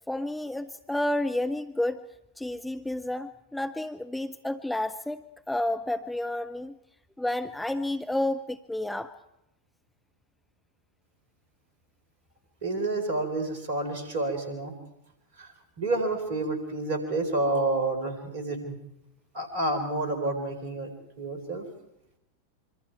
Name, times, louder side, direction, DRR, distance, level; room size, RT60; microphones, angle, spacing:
voice 1, 0.1-2.0 2.4-6.8 7.2-9.1, left 1 dB, 5° left, 9 dB, 0.7 m, -30 dB
voice 2, 12.6-14.7 15.4-18.8 19.3-21.7, right 2 dB, 55° right, 8 dB, 4.0 m, -29 dB
25.5 x 24.5 x 4.7 m, 0.85 s
figure-of-eight pair, 90°, 0 cm